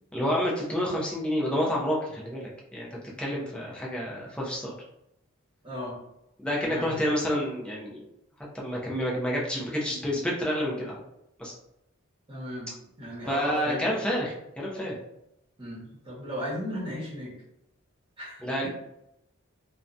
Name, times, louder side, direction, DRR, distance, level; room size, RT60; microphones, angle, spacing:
voice 1, 0.1-2.9 3.2-4.7 6.4-8.0 8.5-11.0 11.4-11.5 13.3-14.9 18.4-18.7, equal, 5° left, -5 dB, 0.6 m, -29 dB
voice 2, 5.6-6.0 6.6-6.9 12.3-12.7 13.0-13.9 15.6-17.3 18.2-18.7, equal, 25° right, -7 dB, 1.1 m, -35 dB
2.7 x 2.2 x 2.5 m, 0.82 s
head